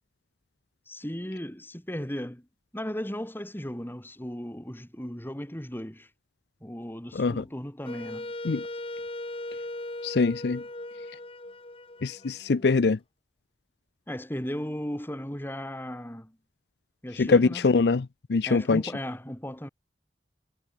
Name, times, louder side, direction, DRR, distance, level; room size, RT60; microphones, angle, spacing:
voice 1, 0.9-2.5 2.7-6.1 6.6-8.3 14.1-16.4 17.0-17.7 18.5-19.7, equal, 10° left, 2.7 m, -36 dB
voice 2, 7.1-7.4 8.4-8.6 10.0-10.6 12.0-13.0 17.2-18.8, left 4 dB, 70° left, 0.5 m, -23 dB
Wind instrument woodwind instrument, 7.8-12.8, left 1 dB, 35° left, 2.6 m, -38 dB
head